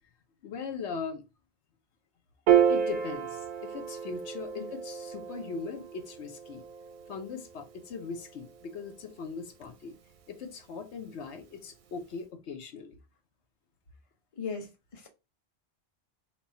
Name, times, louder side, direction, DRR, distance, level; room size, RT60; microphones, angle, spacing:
voice 1, 0.4-1.2 2.7-6.6 7.1-10.0 10.3-13.0, left 5 dB, 80° left, 1.0 m, -40 dB
Piano, 2.5-9.1, right 8 dB, 60° right, 0.6 m, -31 dB
voice 2, 14.3-15.1, left 5 dB, 30° left, 0.9 m, -38 dB
4.1 x 2.3 x 4.0 m
omnidirectional pair, 1.1 m